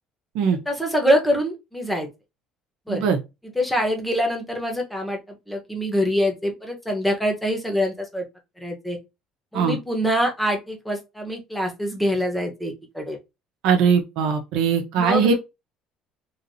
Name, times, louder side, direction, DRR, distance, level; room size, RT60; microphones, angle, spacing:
voice 1, 0.7-2.1 2.9-3.0 3.5-8.2 8.6-9.0 9.5-13.2 15.0-15.3, equal, 5° left, 1.1 m, -24 dB
voice 2, 13.6-15.3, right 6 dB, 80° right, 0.7 m, -20 dB
3.2 x 2.8 x 2.7 m
cardioid pair, 115°, 0 cm